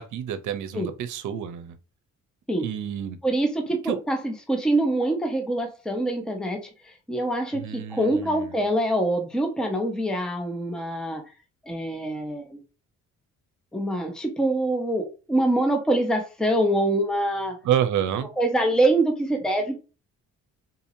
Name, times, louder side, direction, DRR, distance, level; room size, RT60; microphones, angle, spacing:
voice 1, 0.0-1.8 2.6-3.2 3.8-4.0 7.5-8.6 17.6-18.3, right 10 dB, 75° right, 0.7 m, -28 dB
voice 2, 3.2-11.2 11.6-12.6 13.7-17.6 18.4-19.8, right 1 dB, ahead, 0.8 m, -25 dB
3.9 x 2.8 x 2.7 m
cardioid pair, 90°, 30 cm